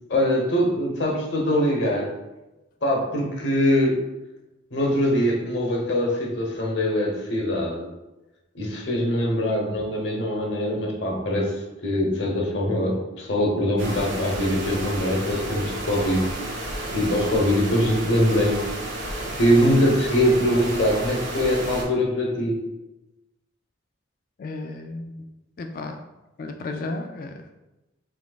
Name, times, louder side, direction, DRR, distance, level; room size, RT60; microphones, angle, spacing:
voice 1, 0.1-2.1 2.8-4.0 4.7-7.9 8.5-16.2 16.9-18.6 19.3-22.6, equal, 70° left, 0 dB, 1.0 m, -23 dB
sound 1, 13.8-21.8, right 1 dB, 80° right, 1.5 m, -32 dB
voice 2, 24.4-25.3 25.6-26.0 26.4-27.5, left 2 dB, 45° left, 5 dB, 0.3 m, -33 dB
5.1 x 3.5 x 2.3 m, 1.0 s
head